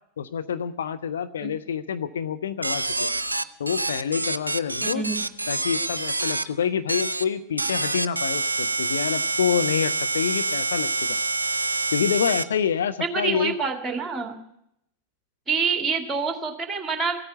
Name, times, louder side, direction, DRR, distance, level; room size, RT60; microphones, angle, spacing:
voice 1, 0.2-3.1 3.6-5.0 5.5-11.2 11.9-13.6, left 8 dB, 65° left, 11 dB, 0.6 m, -27 dB
sound 1, 2.6-6.4 6.9-7.2 7.6-12.4, right 2 dB, 80° right, 0.6 m, -26 dB
voice 2, 4.8-5.2 13.1-14.4 15.5-17.2, right 5 dB, 15° right, 6 dB, 2.2 m, -26 dB
15.5 x 8.9 x 9.4 m, 0.76 s
figure-of-eight pair, 90°, 0 cm